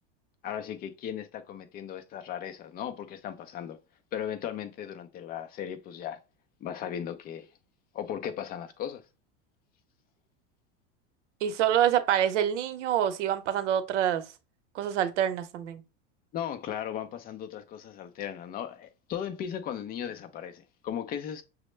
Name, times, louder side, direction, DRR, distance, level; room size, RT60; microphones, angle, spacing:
voice 1, 0.4-3.8 4.1-6.2 6.6-7.5 7.9-9.0 16.3-21.4, left 9 dB, 25° left, 0.5 m, -37 dB
voice 2, 11.4-14.2 14.7-15.8, right 10 dB, 85° right, 0.7 m, -26 dB
6.0 x 2.1 x 3.2 m
supercardioid pair, 140°, 35 cm